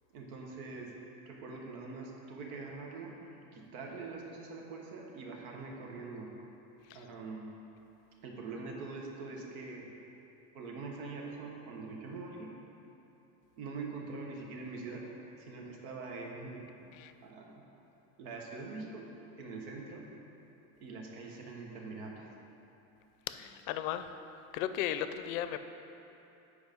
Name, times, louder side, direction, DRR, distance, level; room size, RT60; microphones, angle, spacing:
voice 1, 0.1-1.0 1.2-3.1 3.5-6.3 6.9-7.5 8.2-9.9 10.5-12.6 13.6-15.0 15.4-16.7 17.2-17.6 18.2-19.1 19.4-20.1 20.8-22.2, right 3 dB, 80° right, -1 dB, 1.3 m, -43 dB
voice 2, 23.3-24.1 24.5-25.6, left 11 dB, 70° left, 10 dB, 0.5 m, -35 dB
8.1 x 4.9 x 5.2 m, 2.9 s
supercardioid pair, 170°, 43 cm